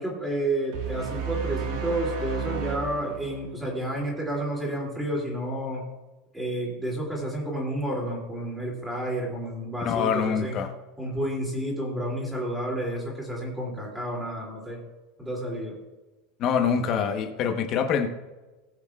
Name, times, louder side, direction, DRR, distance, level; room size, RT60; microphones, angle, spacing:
voice 1, 0.0-5.9 6.3-10.6 11.0-14.8 15.2-15.8, right 1 dB, 5° right, -2 dB, 2.7 m, -30 dB
sound 1, 0.7-4.1, right 6 dB, 70° right, 1.6 m, -32 dB
voice 2, 9.8-10.7 16.4-18.1, left 7 dB, 35° left, 5 dB, 1.0 m, -25 dB
19.0 x 8.0 x 2.4 m, 1.1 s
supercardioid pair, 175°, 0 cm